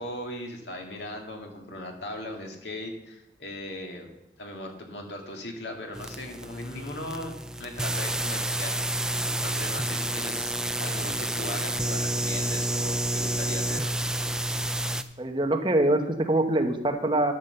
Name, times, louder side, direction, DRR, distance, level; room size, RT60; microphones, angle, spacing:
voice 1, 0.0-4.1 4.4-14.3, left 1 dB, 85° left, 2 dB, 1.9 m, -39 dB
sound 1, 5.9-15.0, right 1 dB, 5° right, 0.3 m, -29 dB
voice 2, 15.2-17.3, right 1 dB, 25° right, 6 dB, 0.9 m, -24 dB
12.0 x 5.8 x 6.8 m, 0.95 s
head